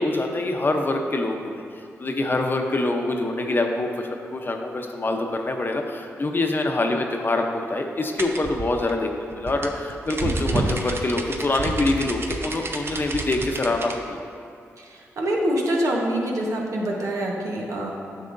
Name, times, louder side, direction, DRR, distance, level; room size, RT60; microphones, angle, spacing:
voice 1, 0.0-1.6 2.0-14.2, left 2 dB, 40° left, 3 dB, 0.8 m, -25 dB
sound 1, 8.2-14.0, right 2 dB, 45° right, 0.7 m, -29 dB
voice 2, 14.8-17.9, right 1 dB, 70° right, -2 dB, 1.2 m, -25 dB
9.5 x 6.3 x 2.7 m, 2.4 s
supercardioid pair, 50°, 6 cm